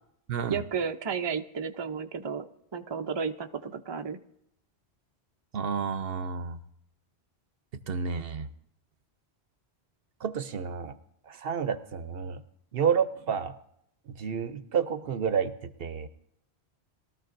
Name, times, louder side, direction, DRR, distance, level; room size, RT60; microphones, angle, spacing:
voice 1, 0.5-2.5 2.7-4.2, right 6 dB, 30° right, 5 dB, 0.5 m, -32 dB
voice 2, 5.5-6.6 7.9-8.5 10.2-10.9 11.3-12.4 12.7-13.5 14.2-15.5 15.8-16.1, right 7 dB, 65° right, 11 dB, 0.9 m, -30 dB
21.5 x 13.0 x 2.6 m, 0.74 s
omnidirectional pair, 1.1 m